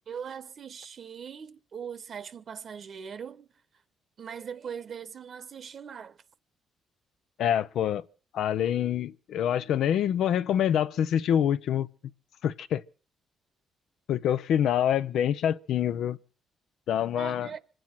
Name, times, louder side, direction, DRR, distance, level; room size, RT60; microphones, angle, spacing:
voice 1, 0.1-3.5 4.2-6.2 17.1-17.6, right 7 dB, 55° right, 1.0 m, -40 dB
voice 2, 7.4-8.0 8.3-11.9 12.4-12.8 14.1-16.2 16.9-17.5, left 10 dB, 75° left, 0.7 m, -26 dB
25.5 x 9.1 x 5.9 m
cardioid pair, 90°, 0 cm